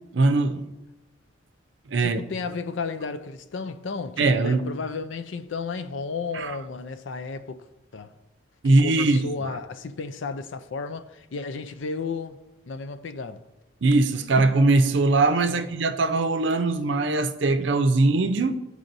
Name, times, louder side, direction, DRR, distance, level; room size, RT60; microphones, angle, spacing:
voice 1, 0.1-0.7 1.9-2.2 4.2-4.6 6.3-6.6 8.6-9.3 13.8-18.6, right 2 dB, 70° right, 0.5 m, -21 dB
voice 2, 2.0-7.6 7.9-8.1 8.6-12.4 12.7-13.4 15.5-15.6, left 4 dB, 75° left, 0.5 m, -33 dB
13.5 x 4.9 x 2.6 m
head